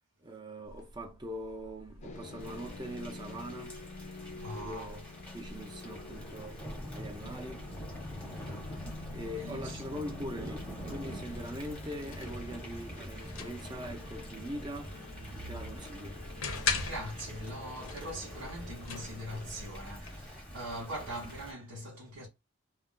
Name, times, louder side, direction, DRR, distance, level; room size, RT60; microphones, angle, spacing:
voice 1, 0.2-3.8 4.5-5.0 5.3-6.6 6.9-7.7 9.1-15.1 15.5-16.2, equal, 20° right, 0.5 m, -42 dB
sound 1, 0.6-20.4, left 4 dB, 80° left, 0.6 m, -44 dB
sound 2, 2.0-19.8, left 4 dB, 35° left, 0.5 m, -49 dB
Thunder / Rain, 2.4-21.5, equal, 5° left, 0.8 m, -45 dB
voice 2, 4.2-5.0 9.4-10.0 15.2-15.7 16.8-22.3, right 1 dB, 85° right, 0.8 m, -42 dB
2.3 x 2.1 x 3.7 m
head